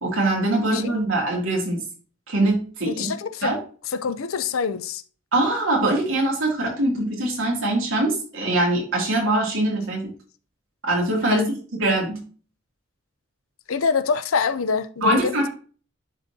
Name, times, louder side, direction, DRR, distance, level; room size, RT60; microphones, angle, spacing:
voice 1, 0.0-1.8 2.3-3.1 3.4-3.6 5.3-10.1 10.9-11.5 11.8-12.2 15.0-15.5, right 1 dB, 80° right, 2.9 m, -22 dB
voice 2, 2.9-3.5 3.9-5.0 11.3-11.5 13.7-15.5, left 5 dB, 90° left, 0.6 m, -25 dB
10.5 x 4.2 x 2.9 m
head